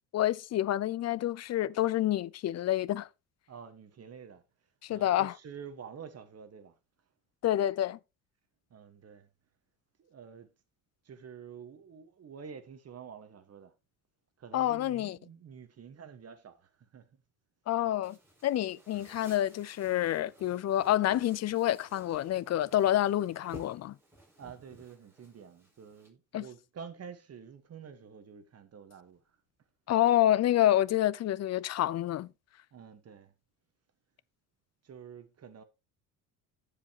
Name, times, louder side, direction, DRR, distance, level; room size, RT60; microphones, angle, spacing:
voice 1, 0.1-3.1 4.8-5.3 7.4-8.0 14.5-15.2 17.7-18.2 18.4-23.9 26.3-26.4 29.9-32.3, left 13 dB, 45° left, 0.5 m, -28 dB
voice 2, 3.5-6.8 8.7-9.3 10.0-10.5 11.0-13.7 14.4-17.1 24.4-29.4 32.7-33.3 34.8-35.6, right 7 dB, 40° right, 1.3 m, -49 dB
sound 1, 18.0-26.1, equal, 5° right, 4.8 m, -55 dB
14.5 x 5.0 x 2.9 m
supercardioid pair, 85°, 38 cm